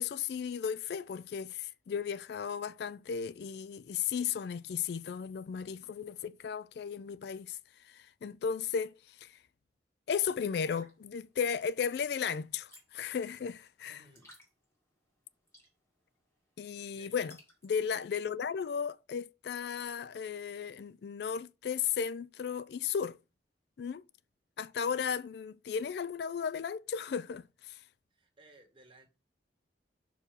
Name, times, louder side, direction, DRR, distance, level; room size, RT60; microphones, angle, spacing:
voice 1, 0.0-9.4 10.1-14.0 16.6-17.4 17.6-23.2 23.8-24.0 24.6-27.8, left 7 dB, 60° left, 0.3 m, -35 dB
sound 1, 10.7-18.0, equal, 15° left, 2.0 m, -63 dB
voice 2, 13.8-14.3 16.9-17.3 28.1-29.1, right 2 dB, 30° right, 1.7 m, -59 dB
6.0 x 4.5 x 5.1 m
head